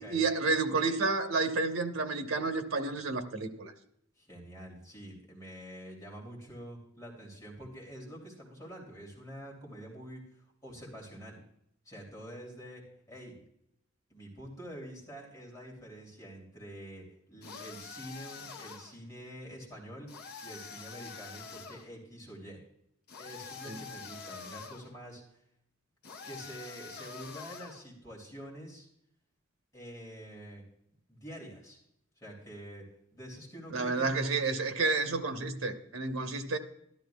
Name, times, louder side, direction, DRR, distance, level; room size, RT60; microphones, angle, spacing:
voice 1, 0.0-3.7 23.7-23.8 33.7-36.6, right 3 dB, 85° right, 1.1 m, -30 dB
voice 2, 4.2-11.4 11.8-13.4 14.1-20.1 20.4-22.6 23.2-25.2 26.2-28.9 29.7-30.6 31.1-31.8 32.2-32.8 33.1-34.3, equal, 15° left, 2.9 m, -47 dB
sound 1, 17.4-19.0 20.1-21.9 23.1-24.9 26.0-27.9, left 5 dB, 50° left, 1.0 m, -46 dB
13.0 x 12.5 x 2.3 m
head